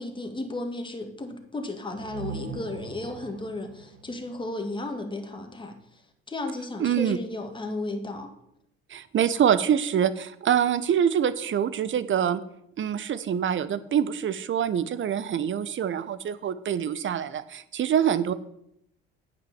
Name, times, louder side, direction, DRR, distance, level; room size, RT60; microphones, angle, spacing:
voice 1, 0.0-5.8 6.3-8.3, left 2 dB, 15° left, 4 dB, 1.9 m, -34 dB
sound 1, 1.9-5.6, right 5 dB, 70° right, 1.5 m, -42 dB
voice 2, 6.8-7.2 8.9-12.4 12.8-18.3, right 9 dB, 40° right, 14 dB, 0.8 m, -25 dB
9.0 x 6.1 x 7.2 m, 0.77 s
hypercardioid pair, 65°, 31 cm